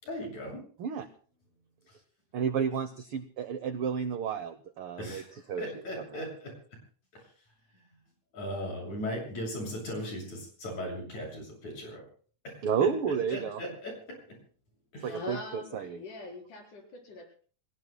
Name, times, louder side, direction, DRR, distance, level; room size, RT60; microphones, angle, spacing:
voice 1, 0.0-0.6 1.9-2.0 5.0-6.5 7.1-7.2 7.7-7.9 8.3-12.0 12.4-12.7 13.3-13.9 14.9-15.2, equal, 65° left, 0 dB, 8.5 m, -38 dB
voice 2, 2.3-5.2 5.5-5.6 6.1-6.2 12.6-13.6 15.0-16.0, right 7 dB, 85° right, 11 dB, 1.2 m, -31 dB
voice 3, 15.1-17.3, left 2 dB, 80° left, 1 dB, 5.9 m, -42 dB
29.5 x 18.5 x 2.2 m, 0.44 s
omnidirectional pair, 3.5 m